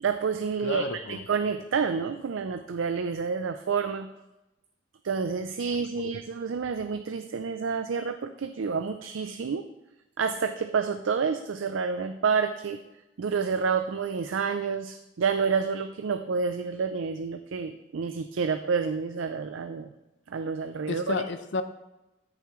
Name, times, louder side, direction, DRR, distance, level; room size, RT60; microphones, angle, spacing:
voice 1, 0.0-4.1 5.0-9.6 10.2-12.8 13.2-19.9 20.3-21.2, right 5 dB, 80° right, 9 dB, 0.4 m, -29 dB
voice 2, 0.6-1.2 6.0-6.1 20.9-21.6, left 3 dB, 65° left, 11 dB, 0.6 m, -31 dB
13.0 x 6.8 x 3.1 m, 0.97 s
head